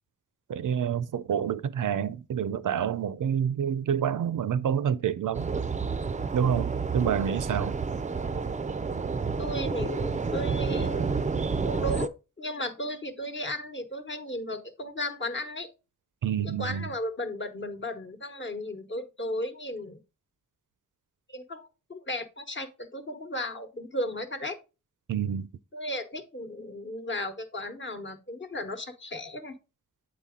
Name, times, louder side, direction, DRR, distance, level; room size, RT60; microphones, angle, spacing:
voice 1, 0.5-5.5 6.3-7.8 16.2-16.9 25.1-25.5, right 8 dB, 80° right, 0.5 m, -28 dB
sound 1, 5.3-12.1, right 4 dB, 25° right, 0.4 m, -30 dB
voice 2, 9.4-11.2 11.6-15.7 16.6-20.0 21.3-24.6 25.7-29.5, left 1 dB, 40° left, 1.1 m, -35 dB
7.8 x 4.2 x 3.6 m
wide cardioid pair, 65°, 31 cm